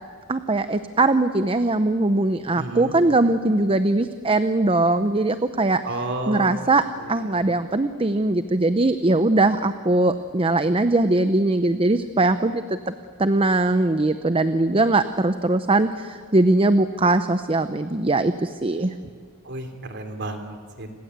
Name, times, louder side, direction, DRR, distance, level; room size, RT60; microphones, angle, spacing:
voice 1, 0.3-5.8 6.3-6.8 7.1-12.9 13.2-18.9, right 2 dB, 25° right, 11 dB, 0.7 m, -21 dB
voice 2, 2.5-3.0 5.8-6.7 7.0-7.5 19.4-20.9, right 2 dB, 55° right, 7 dB, 3.2 m, -32 dB
29.5 x 21.0 x 8.2 m, 2.2 s
head